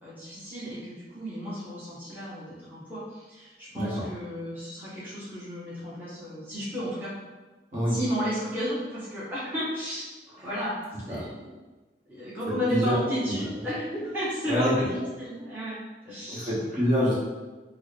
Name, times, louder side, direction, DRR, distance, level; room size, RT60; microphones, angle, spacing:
voice 1, 0.0-7.1 7.9-10.0 10.4-10.8 11.0-11.5 12.1-15.8 16.0-16.5, equal, 10° right, -11 dB, 1.0 m, -33 dB
voice 2, 3.7-4.1 7.7-8.0 11.1-11.3 12.5-13.0 13.4-13.5 14.4-14.7 16.3-17.1, equal, 40° right, -7 dB, 1.2 m, -26 dB
4.5 x 2.1 x 3.2 m, 1.2 s
head